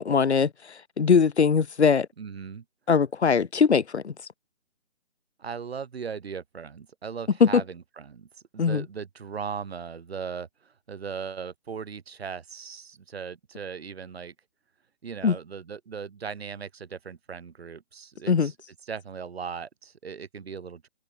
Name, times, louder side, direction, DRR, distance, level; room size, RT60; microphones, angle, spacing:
voice 1, 0.0-2.1 2.9-4.1 7.4-7.6 8.6-8.9 15.2-15.4 18.3-18.5, left 6 dB, 55° left, 3.0 m, -21 dB
voice 2, 2.2-2.6 5.4-8.3 8.5-14.3 15.0-18.5 18.9-20.9, right 6 dB, 50° right, 5.8 m, -38 dB
open air
hypercardioid pair, 165°, 39 cm